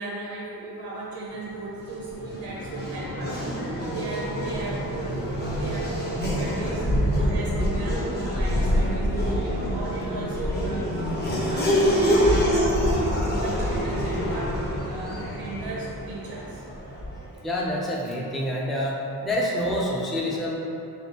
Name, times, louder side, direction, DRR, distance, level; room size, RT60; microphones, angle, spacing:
voice 1, 0.0-16.8, right 2 dB, 85° right, -5 dB, 0.7 m, -36 dB
Race car auto racing / Accelerating revving vroom, 1.7-17.3, equal, 25° left, 0.8 m, -26 dB
voice 2, 17.4-19.0 19.2-20.6, left 1 dB, ahead, -5 dB, 0.4 m, -27 dB
3.8 x 3.4 x 2.8 m, 2.8 s
wide cardioid pair, 100°, 39 cm